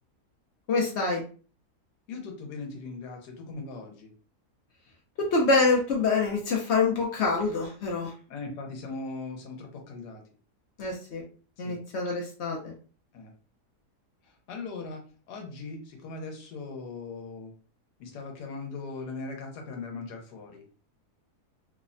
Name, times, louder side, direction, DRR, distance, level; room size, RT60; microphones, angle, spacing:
voice 1, 0.7-1.2 5.2-8.1 10.8-11.2 11.6-12.7, left 3 dB, 70° left, 0 dB, 0.6 m, -26 dB
voice 2, 2.1-4.1 8.3-10.2 11.6-11.8 13.1-13.3 14.2-17.5 18.0-20.7, left 3 dB, 85° left, 3 dB, 1.3 m, -39 dB
3.1 x 2.1 x 2.5 m, 0.39 s
omnidirectional pair, 1.7 m